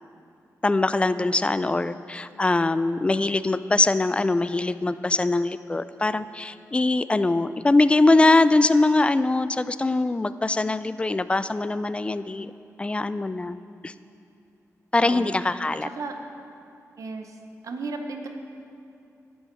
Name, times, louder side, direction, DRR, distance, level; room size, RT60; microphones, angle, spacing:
voice 1, 0.6-12.5 12.8-13.6 13.8-13.9 14.9-15.9, left 2 dB, 20° left, 14 dB, 0.3 m, -22 dB
voice 2, 15.0-15.3 16.0-16.1 17.0-17.3 17.6-18.3, right 3 dB, 70° right, 4 dB, 0.8 m, -34 dB
11.0 x 10.5 x 4.6 m, 2.6 s
wide cardioid pair, 110°, 6 cm